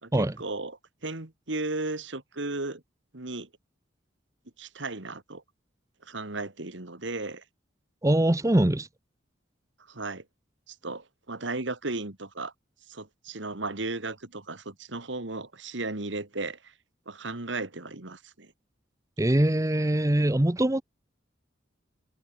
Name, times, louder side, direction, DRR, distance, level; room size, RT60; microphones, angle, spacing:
voice 1, 0.0-0.8 1.0-2.8 3.1-3.5 4.6-5.4 6.0-7.4 9.9-10.2 10.7-12.5 12.9-16.7 17.1-18.5, right 2 dB, 70° right, 2.2 m, -35 dB
voice 2, 8.0-8.9 19.2-20.8, right 1 dB, 15° right, 0.8 m, -23 dB
head